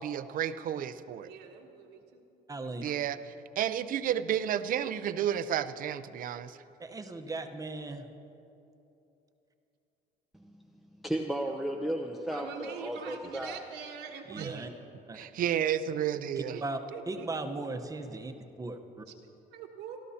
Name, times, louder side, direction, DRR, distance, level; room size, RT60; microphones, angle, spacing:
voice 1, 0.0-1.3 2.8-6.6 14.4-14.5 15.2-16.6, right 10 dB, 55° right, 13 dB, 0.5 m, -31 dB
voice 2, 1.2-3.4 7.5-8.0 12.3-14.8 16.5-16.6 16.9-17.3 18.1-18.2 19.1-19.2 19.5-20.0, right 7 dB, 85° right, 2 dB, 1.3 m, -45 dB
voice 3, 2.5-2.8 6.8-8.1 14.3-14.7 15.1-15.2 16.6-16.8 17.1-18.3 18.6-19.0, right 2 dB, 20° right, 5 dB, 0.9 m, -37 dB
voice 4, 11.0-13.6, right 1 dB, ahead, 2 dB, 0.6 m, -34 dB
26.0 x 12.5 x 2.8 m, 2.8 s
cardioid pair, 110°, 17 cm